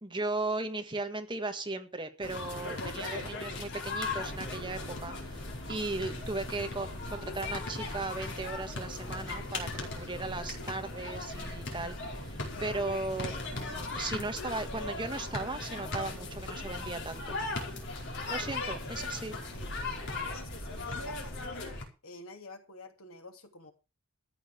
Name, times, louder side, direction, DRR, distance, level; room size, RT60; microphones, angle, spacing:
voice 1, 0.0-17.4 18.3-19.4, right 2 dB, 20° right, 7 dB, 1.7 m, -37 dB
sound 1, 2.2-21.8, left 3 dB, 55° left, 4.8 m, -38 dB
sound 2, 4.0-21.5, equal, 20° left, 6.6 m, -45 dB
voice 2, 18.4-19.2 19.5-19.7 20.3-21.7 22.0-23.7, left 2 dB, 75° left, 5 dB, 2.8 m, -48 dB
14.0 x 9.2 x 6.1 m, 0.31 s
head